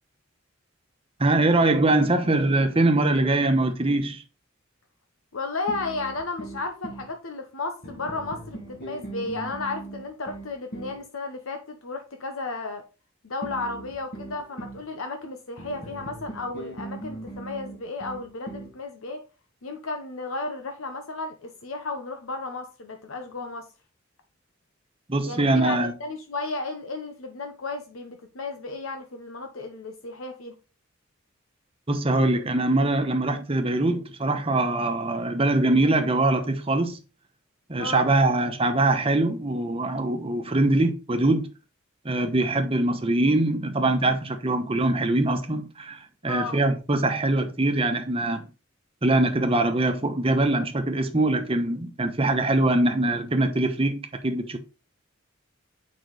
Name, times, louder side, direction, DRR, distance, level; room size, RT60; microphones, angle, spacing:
voice 1, 1.2-4.2 25.1-25.9 31.9-37.0 37.7-41.5 42.0-48.5 49.0-54.6, right 2 dB, 25° right, 1.0 m, -23 dB
voice 2, 5.3-12.8 13.2-19.2 19.6-23.7 25.2-30.6 37.8-38.1 46.2-46.6, left 3 dB, 85° left, 1.0 m, -34 dB
sound 1, 5.7-7.1 7.8-11.0 13.4-14.8 15.6-18.8, right 2 dB, 50° left, 2.6 m, -39 dB
6.9 x 5.3 x 4.0 m
head